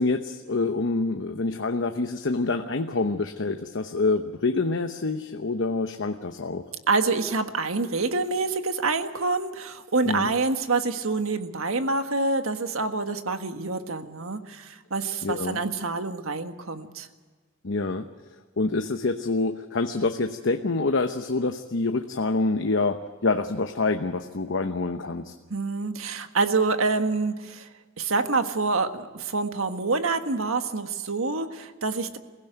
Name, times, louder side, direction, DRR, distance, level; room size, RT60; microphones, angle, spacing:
voice 1, 0.0-6.6 10.0-10.3 15.2-15.6 17.6-18.1 18.6-25.3, left 3 dB, 65° left, 6 dB, 0.9 m, -26 dB
voice 2, 6.9-17.1 25.5-27.7 28.0-32.2, right 3 dB, 85° right, 8 dB, 1.6 m, -27 dB
22.5 x 16.0 x 9.1 m, 1.5 s
head